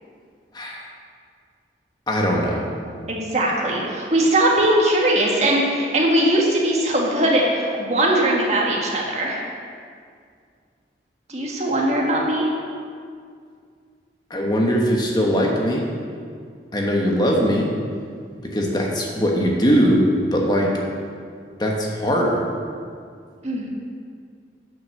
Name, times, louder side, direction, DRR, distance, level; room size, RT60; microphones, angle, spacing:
voice 1, 2.1-2.7 14.3-15.8 16.7-17.7 18.5-20.0 20.3-20.7 21.6-22.4, equal, 25° left, -1 dB, 1.3 m, -20 dB
voice 2, 3.1-9.4 11.3-12.5 23.4-23.7, right 1 dB, 40° right, -2 dB, 1.7 m, -20 dB
9.3 x 6.0 x 6.5 m, 2.1 s
head